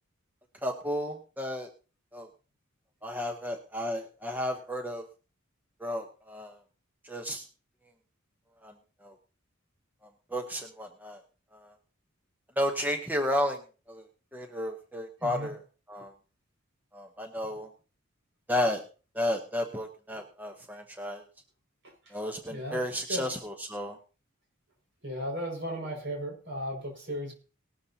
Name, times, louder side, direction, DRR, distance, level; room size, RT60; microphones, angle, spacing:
voice 1, 0.6-1.7 2.1-2.3 3.0-5.1 5.8-6.6 7.0-7.4 8.6-8.7 9.0-9.1 10.3-11.2 11.5-11.7 12.6-13.6 13.9-14.0 14.3-15.6 15.9-16.1 16.9-17.7 18.5-18.8 19.1-21.2 22.1-24.0, left 1 dB, 10° right, 4 dB, 0.9 m, -32 dB
voice 2, 22.5-22.8 23.1-23.3 25.0-27.3, equal, 60° right, 1 dB, 5.7 m, -35 dB
19.0 x 12.5 x 2.8 m, 0.36 s
head